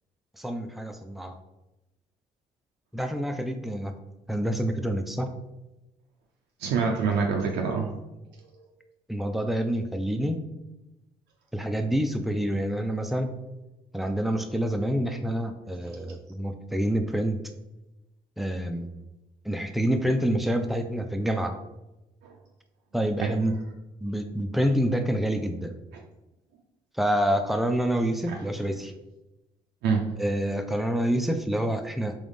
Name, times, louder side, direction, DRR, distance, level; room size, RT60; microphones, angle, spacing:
voice 1, 0.4-1.4 2.9-3.9 4.3-5.3 9.1-10.4 11.5-13.4 13.9-17.4 18.4-18.9 19.4-21.5 22.9-23.6 24.0-25.7 26.9-28.9 30.2-32.2, equal, ahead, 6 dB, 0.5 m, -27 dB
voice 2, 6.6-7.9 22.2-22.3 23.2-23.4 25.9-26.0 28.3-28.4 29.8-30.2, right 5 dB, 70° right, 1 dB, 0.5 m, -26 dB
3.6 x 3.0 x 3.5 m, 1.0 s
hypercardioid pair, 50°, 18 cm